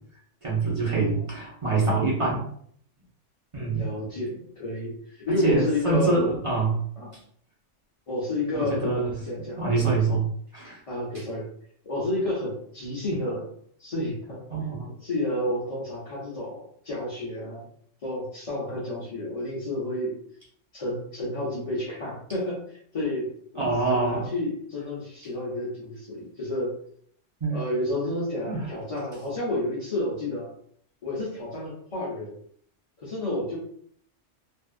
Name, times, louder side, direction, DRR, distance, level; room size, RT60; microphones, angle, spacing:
voice 1, 0.4-2.4 3.5-3.9 5.4-6.8 8.5-9.1 9.6-10.3 10.5-10.8 14.5-14.9 23.6-24.3 27.4-27.6 28.4-28.6, right 3 dB, 35° right, -5 dB, 0.5 m, -25 dB
voice 2, 3.7-6.3 7.0-7.1 8.1-9.6 10.9-11.5 11.8-13.5 13.8-14.4 15.0-17.7 18.0-20.2 20.7-23.3 23.9-26.8 27.5-30.5 31.0-32.3 33.0-33.6, left 1 dB, 40° left, -7 dB, 0.5 m, -30 dB
2.6 x 2.3 x 2.4 m, 0.63 s
omnidirectional pair, 1.3 m